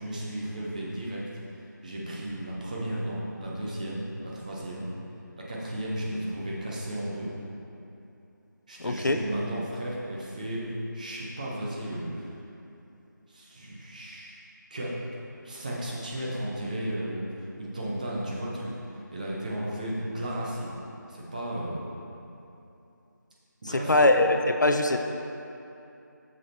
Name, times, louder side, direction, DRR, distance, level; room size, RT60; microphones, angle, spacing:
voice 1, 0.0-4.9 5.4-7.4 8.7-12.3 13.3-14.4 14.7-15.1 15.4-20.8 21.1-21.8 23.6-24.1, right 1 dB, 25° right, -5 dB, 0.9 m, -34 dB
voice 2, 8.8-9.2 23.7-25.0, left 2 dB, 65° left, 5 dB, 0.5 m, -22 dB
6.5 x 6.3 x 4.3 m, 2.8 s
figure-of-eight pair, 165°, 11 cm